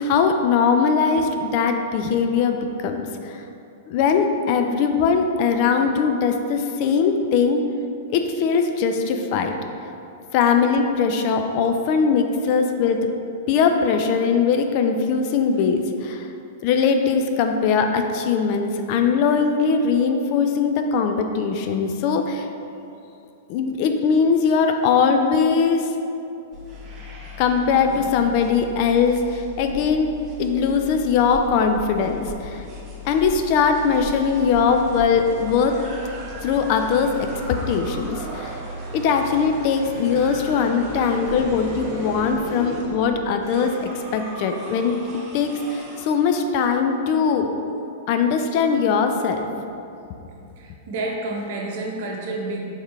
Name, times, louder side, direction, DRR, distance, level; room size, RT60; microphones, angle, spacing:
voice 1, 0.0-3.4 3.9-7.6 8.1-9.5 10.3-13.1 13.5-16.3 16.6-22.5 23.5-25.9 27.4-32.6 33.0-35.8 36.4-38.6 38.9-45.0 45.3-47.6 48.1-49.5, left 5 dB, 50° left, 5 dB, 0.4 m, -21 dB
sound 1, 26.5-46.0, left 1 dB, 35° right, 1.1 m, -37 dB
voice 2, 41.1-41.5 50.6-52.6, right 2 dB, 55° right, -1 dB, 0.8 m, -30 dB
4.4 x 3.5 x 3.3 m, 2.7 s
hypercardioid pair, 105°, 0 cm